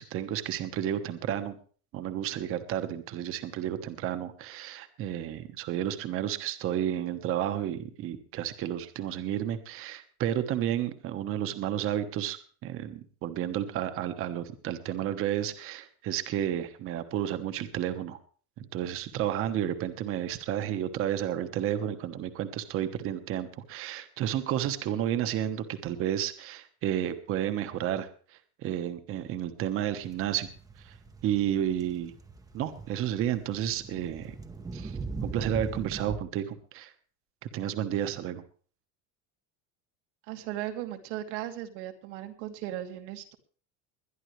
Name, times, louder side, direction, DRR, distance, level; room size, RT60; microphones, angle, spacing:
voice 1, 0.0-1.6 1.9-18.2 18.6-28.1 28.6-30.5 30.8-30.9 31.2-32.1 32.5-34.3 34.7-36.9 37.5-38.4, right 11 dB, 40° right, 10 dB, 1.3 m, -31 dB
sound 1, 30.0-36.2, right 4 dB, 10° right, 0.9 m, -41 dB
voice 2, 40.3-43.4, right 13 dB, 90° right, 6 dB, 2.5 m, -37 dB
21.0 x 11.5 x 3.2 m, 0.43 s
cardioid pair, 175°, 34 cm